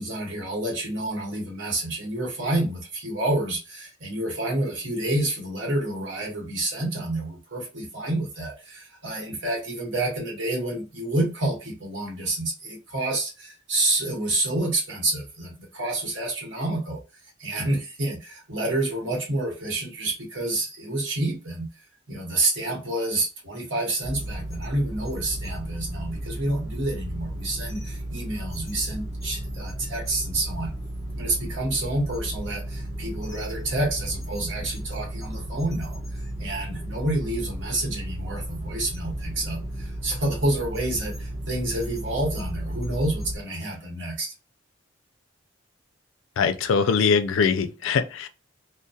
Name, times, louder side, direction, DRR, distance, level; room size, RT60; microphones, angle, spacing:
voice 1, 0.0-17.0 17.4-21.7 22.1-30.7 31.2-36.0 36.4-44.3, right 2 dB, 65° right, 1.0 m, -28 dB
sound 1, 24.0-43.3, right 1 dB, 15° left, 0.5 m, -34 dB
voice 2, 46.4-48.3, left 5 dB, 75° left, 0.3 m, -22 dB
2.2 x 2.1 x 2.6 m
head